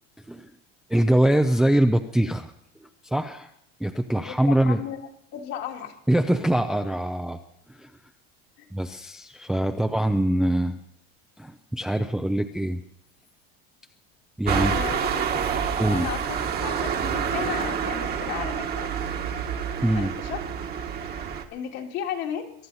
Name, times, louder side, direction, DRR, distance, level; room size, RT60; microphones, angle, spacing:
voice 1, 0.9-2.5 2.8-3.5 3.8-4.8 6.1-7.4 7.7-7.9 8.7-10.8 11.4-12.8 14.4-14.7 15.8-16.1 19.8-20.1, right 1 dB, ahead, 6 dB, 0.5 m, -23 dB
voice 2, 4.2-5.0 5.3-6.0 8.6-8.7 14.5-18.9 19.9-20.5 21.1-22.5, left 9 dB, 55° left, 0 dB, 2.2 m, -35 dB
sound 1, 14.5-21.4, right 7 dB, 30° right, 1.5 m, -28 dB
23.0 x 11.0 x 4.1 m, 0.72 s
cardioid pair, 150°, 31 cm